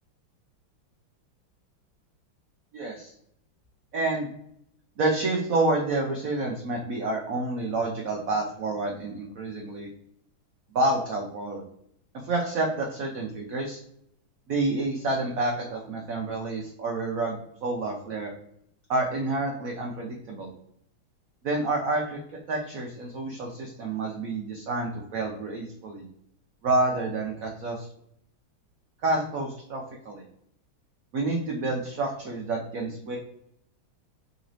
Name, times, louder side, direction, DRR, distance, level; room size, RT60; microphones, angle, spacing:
voice 1, 2.7-3.1 3.9-4.3 5.0-9.9 10.7-11.6 12.2-13.8 14.5-18.4 18.9-20.5 21.4-22.2 22.5-26.0 26.6-27.9 29.0-30.2 31.1-33.2, right 2 dB, 90° right, 0 dB, 0.7 m, -28 dB
4.0 x 3.0 x 2.6 m, 0.71 s
omnidirectional pair, 2.2 m